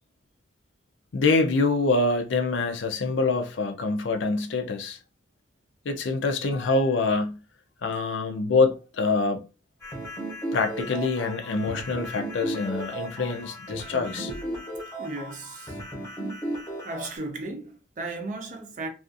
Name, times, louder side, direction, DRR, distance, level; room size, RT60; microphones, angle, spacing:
voice 1, 1.1-5.0 5.9-7.4 7.8-9.4 10.5-14.6, left 3 dB, 70° left, 0.4 m, -25 dB
sound 1, 9.8-17.2, right 1 dB, 15° left, 0.8 m, -35 dB
voice 2, 15.0-15.8 16.1-16.2 16.8-18.9, right 2 dB, 40° right, 0.5 m, -36 dB
2.4 x 2.4 x 2.5 m
head